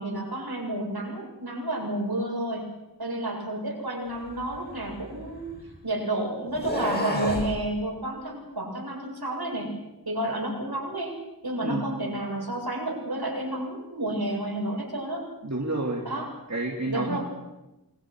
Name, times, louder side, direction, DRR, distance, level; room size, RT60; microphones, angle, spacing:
voice 1, 0.0-2.7 3.0-5.5 5.8-9.7 10.0-11.2 11.4-15.2 16.0-16.3 16.8-17.2, right 1 dB, 75° right, -1 dB, 7.8 m, -30 dB
sound 1, 4.3-5.8 6.5-7.5, equal, 25° left, 7.8 m, -32 dB
voice 2, 15.4-16.0 16.5-17.2, right 2 dB, 45° right, 0 dB, 3.2 m, -29 dB
28.0 x 23.5 x 6.5 m, 1.0 s
wide cardioid pair, 55°, 38 cm